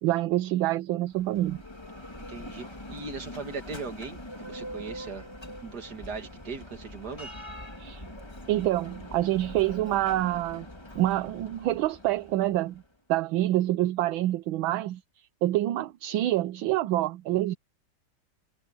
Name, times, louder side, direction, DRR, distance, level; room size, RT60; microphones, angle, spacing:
voice 1, 0.0-1.6 7.8-8.1 8.5-10.7 10.9-12.8 13.1-17.5, right 15 dB, 75° right, 1.5 m, -27 dB
Bell, 1.0-12.9, left 1 dB, 15° left, 1.7 m, -43 dB
voice 2, 2.3-5.3 5.6-7.3, right 4 dB, 50° right, 2.7 m, -39 dB
omnidirectional pair, 2.3 m